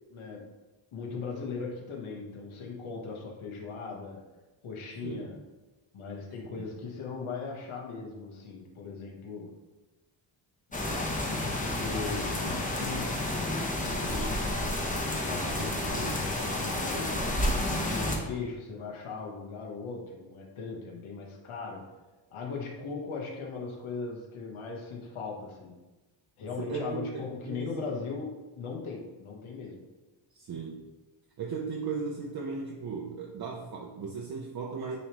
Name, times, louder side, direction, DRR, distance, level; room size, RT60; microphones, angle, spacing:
voice 1, 0.1-0.5 0.9-4.2 4.6-5.4 5.9-9.5 10.7-14.4 15.1-17.6 17.9-21.9 22.3-25.8 26.4-29.8, left 4 dB, 90° left, 0 dB, 1.3 m, -39 dB
sound 1, 10.7-18.2, left 1 dB, 15° left, 0.8 m, -30 dB
voice 2, 26.6-27.7 30.3-30.9 31.4-35.0, right 5 dB, 50° right, 0 dB, 0.7 m, -37 dB
9.7 x 3.3 x 3.0 m, 1.1 s
wide cardioid pair, 145°, 48 cm